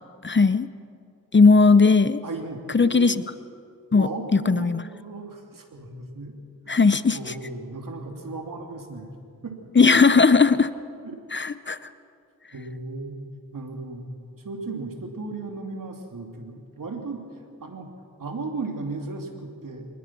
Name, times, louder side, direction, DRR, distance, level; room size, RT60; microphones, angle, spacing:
voice 1, 0.2-0.7 1.3-2.2 2.7-3.2 3.9-4.1 4.5-4.8 6.7-7.2 9.8-10.7 11.3-11.8, left 4 dB, 35° left, 14 dB, 0.8 m, -17 dB
voice 2, 2.2-3.2 4.0-6.3 6.7-6.9 7.1-9.1 9.4-9.6 11.0-11.2 12.5-13.2 13.5-17.3 17.6-17.9 18.2-19.9, right 3 dB, 70° right, 3 dB, 3.0 m, -35 dB
24.5 x 20.0 x 6.1 m, 2.3 s
cardioid pair, 45°, 34 cm